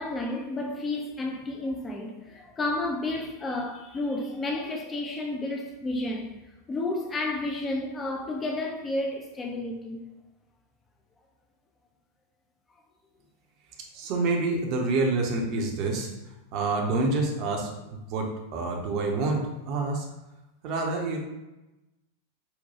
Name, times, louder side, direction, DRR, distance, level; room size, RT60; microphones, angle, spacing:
voice 1, 0.0-6.4 6.7-10.0, left 2 dB, 20° left, 0.5 m, -31 dB
voice 2, 13.9-16.1 16.5-20.0 20.6-21.2, right 3 dB, 45° right, 0.7 m, -27 dB
5.6 x 2.2 x 2.8 m
figure-of-eight pair, 90°, 0 cm